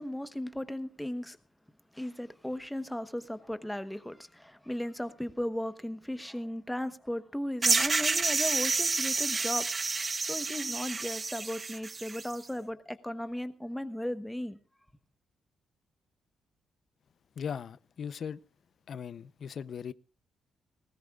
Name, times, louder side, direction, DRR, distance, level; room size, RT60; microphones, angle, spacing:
voice 1, 0.0-1.4 1.9-9.8 10.2-14.6, left 1 dB, 5° left, 1.0 m, -36 dB
sound 1, 7.6-12.3, right 4 dB, 25° right, 0.6 m, -29 dB
voice 2, 17.4-18.4 18.9-19.9, left 7 dB, 50° left, 0.6 m, -38 dB
20.0 x 19.0 x 2.4 m
cardioid pair, 150°, 0 cm